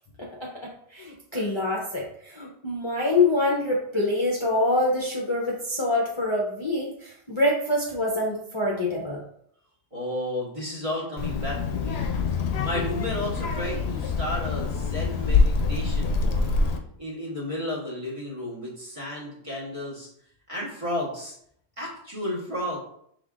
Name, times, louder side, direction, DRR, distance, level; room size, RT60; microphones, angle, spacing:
voice 1, 0.2-9.2, left 2 dB, 30° left, -3 dB, 0.6 m, -26 dB
voice 2, 9.9-12.1 12.6-16.7 17.0-20.1 20.5-21.4 21.8-22.8, left 1 dB, 30° right, -5 dB, 1.3 m, -33 dB
Child speech kid speaking, 11.2-16.8, left 4 dB, 70° left, 0.8 m, -25 dB
5.3 x 3.4 x 2.5 m, 0.68 s
omnidirectional pair, 1.1 m